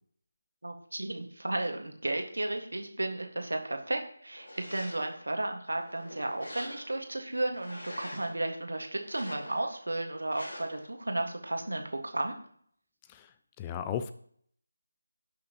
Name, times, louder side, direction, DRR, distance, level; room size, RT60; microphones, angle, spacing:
voice 1, 0.6-12.3, right 2 dB, 65° right, 4 dB, 1.7 m, -34 dB
sound 1, 4.3-5.2 5.7-7.1 7.5-8.4 9.0-9.8 10.3-10.9, left 1 dB, 55° left, 4.4 m, -45 dB
voice 2, 13.1-14.1, left 9 dB, 15° left, 10 dB, 0.3 m, -36 dB
16.5 x 6.2 x 3.0 m, 0.62 s
figure-of-eight pair, 160°, 0 cm